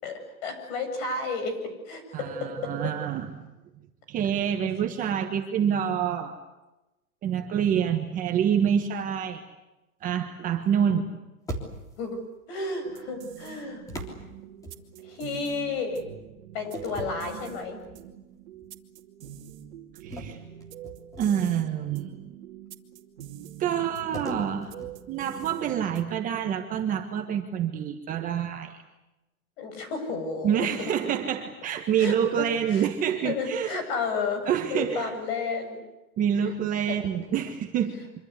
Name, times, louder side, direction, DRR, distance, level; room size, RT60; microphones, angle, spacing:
voice 1, 0.0-2.7 12.0-12.2 12.5-13.8 15.0-16.0 16.5-17.8 29.6-30.7 32.0-32.8 33.2-35.8 36.4-36.5 36.9-37.0, left 4 dB, 45° left, 6 dB, 7.7 m, -32 dB
voice 2, 2.1-3.4 4.1-6.4 7.2-9.4 10.0-11.1 20.0-20.4 21.2-22.1 23.6-24.7 25.1-28.8 30.4-33.8 34.5-35.1 36.2-38.0, right 8 dB, 20° right, 3 dB, 1.4 m, -27 dB
sound 1, 11.5-12.1 13.9-15.2 16.7-18.1 18.5-18.8 20.1-21.6 24.1-25.8, right 1 dB, 5° left, 3.4 m, -40 dB
sound 2, 12.8-26.3, right 11 dB, 50° right, 2.6 m, -45 dB
26.0 x 25.5 x 8.2 m, 1.0 s
supercardioid pair, 160°, 44 cm